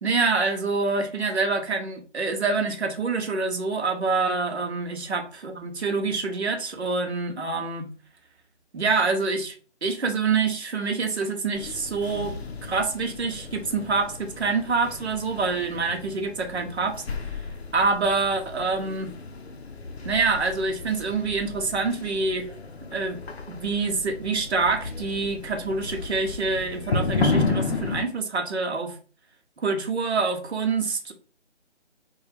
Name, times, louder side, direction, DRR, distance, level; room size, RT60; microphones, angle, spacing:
voice 1, 0.0-7.9 8.7-9.5 9.8-17.0 17.3-17.4 17.7-19.2 20.0-22.5 22.9-23.2 23.5-29.0 29.6-31.1, right 4 dB, 65° right, 5 dB, 0.8 m, -26 dB
sound 1, 11.5-28.0, left 3 dB, 60° left, 0.6 m, -33 dB
3.1 x 2.3 x 3.2 m, 0.38 s
figure-of-eight pair, 155°, 35 cm